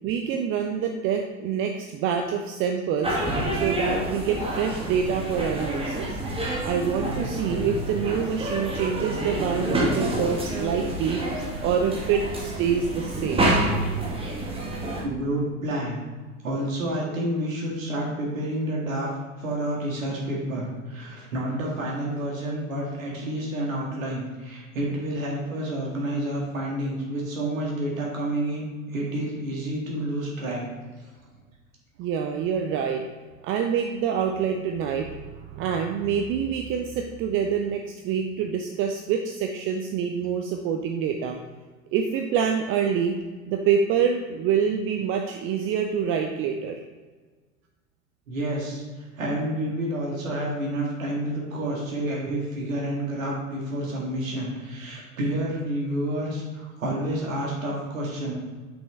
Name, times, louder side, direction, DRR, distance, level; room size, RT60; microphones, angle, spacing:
voice 1, 0.0-3.2 3.5-6.2 6.6-13.5 32.0-33.0 33.4-41.4 41.9-43.2 43.5-46.8, right 7 dB, 30° right, 4 dB, 0.6 m, -26 dB
sound 1, 3.0-15.0, right 1 dB, 15° right, 1.4 m, -28 dB
voice 2, 15.0-16.0 16.4-19.1 19.4-30.6 48.3-58.3, right 1 dB, 70° right, -2 dB, 2.0 m, -29 dB
8.1 x 6.3 x 3.2 m, 1.4 s
figure-of-eight pair, 80°, 42 cm